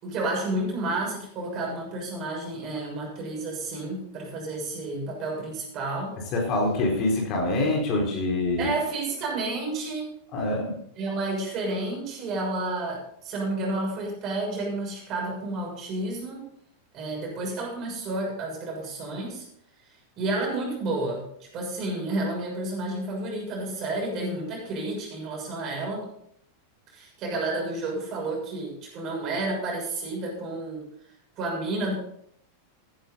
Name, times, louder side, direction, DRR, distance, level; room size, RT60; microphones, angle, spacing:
voice 1, 0.0-6.2 8.6-10.1 11.0-16.4 16.9-19.4 20.2-26.1 26.9-30.8 31.4-31.9, right 2 dB, 35° right, -1 dB, 6.7 m, -31 dB
voice 2, 6.3-8.7 10.3-10.7, left 2 dB, 40° left, -1 dB, 4.3 m, -25 dB
15.5 x 11.0 x 4.0 m, 0.68 s
figure-of-eight pair, 90°, 0 cm